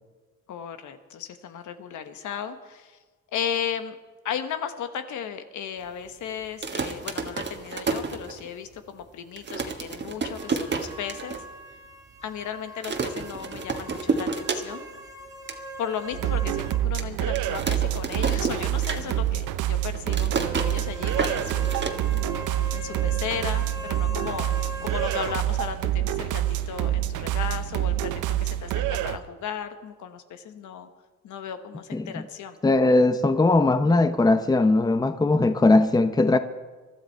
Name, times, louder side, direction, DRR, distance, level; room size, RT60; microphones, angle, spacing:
voice 1, 0.5-3.0 3.3-4.0 4.2-11.4 12.2-14.9 15.8-21.7 22.7-24.5 24.8-30.9 31.2-32.6, left 8 dB, 75° left, 1.3 m, -35 dB
sound 1, 6.5-8.7 9.1-9.2 9.4-11.4 11.8-11.9 12.1-12.4 12.8-15.0 15.3-15.6 16.1-16.2 17.0-19.4 19.7-22.6, right 4 dB, 35° right, 1.5 m, -31 dB
sound 2, 10.3-16.9 17.2-17.3 20.3-25.4, right 1 dB, 10° right, 1.7 m, -41 dB
sound 3, 16.1-29.2, right 13 dB, 85° right, 0.7 m, -27 dB
voice 2, 31.9-32.2 32.6-36.4, left 2 dB, 15° left, 0.7 m, -20 dB
20.5 x 12.5 x 4.5 m
cardioid pair, 90°, 30 cm